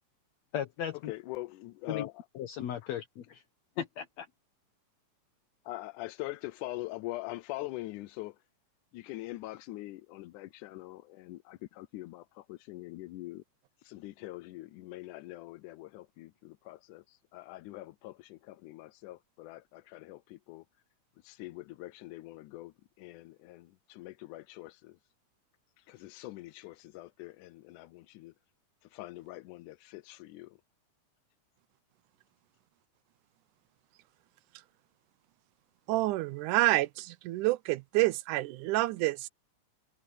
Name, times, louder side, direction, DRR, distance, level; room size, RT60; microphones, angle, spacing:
voice 1, 0.5-1.1 1.9-2.1 2.4-3.4 3.8-4.3, left 9 dB, 65° left, 2.3 m, -36 dB
voice 2, 1.1-2.1 5.7-8.4 8.9-13.4 13.8-20.6 21.2-25.0 25.8-28.3 28.9-30.6, left 18 dB, 85° left, 2.1 m, -43 dB
voice 3, 35.9-39.3, right 18 dB, 85° right, 2.2 m, -28 dB
omnidirectional pair, 3.5 m